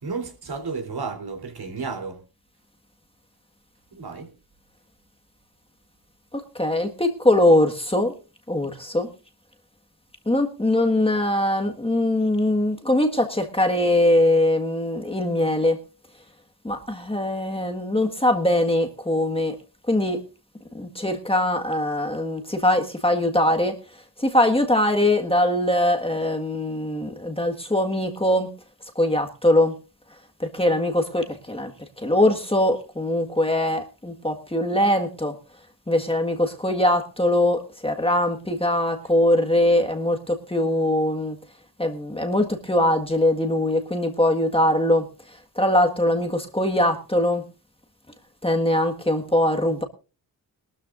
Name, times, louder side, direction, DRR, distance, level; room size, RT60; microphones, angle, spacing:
voice 1, 0.0-2.2 3.9-4.3, right 4 dB, 65° right, 3.5 m, -32 dB
voice 2, 6.3-8.1 8.5-9.1 10.2-15.8 16.6-19.6 19.9-20.2 20.7-23.8 24.2-28.5 28.9-29.7 30.4-31.7 32.0-35.4 35.9-41.4 41.8-45.1 45.5-47.4 48.4-49.8, left 1 dB, 15° left, 1.6 m, -22 dB
21.5 x 13.0 x 2.6 m
cardioid pair, 75°, 41 cm